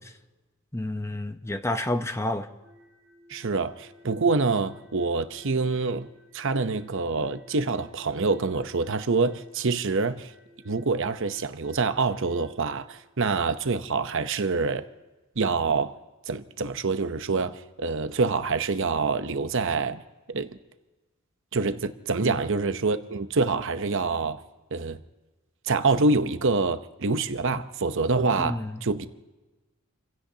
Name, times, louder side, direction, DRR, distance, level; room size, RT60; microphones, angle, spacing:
voice 1, 0.7-2.5 22.2-22.4 27.5-27.6 28.4-28.8, left 1 dB, 15° left, 0.8 m, -30 dB
sound 1, 2.6-13.0, left 1 dB, 10° right, 4.5 m, -57 dB
voice 2, 3.3-6.1 6.3-10.3 10.6-14.9 15.4-16.0 16.3-20.0 20.3-20.6 21.5-24.4 24.7-25.0 25.7-29.1, right 3 dB, 60° right, 0.8 m, -26 dB
29.5 x 16.5 x 2.9 m
head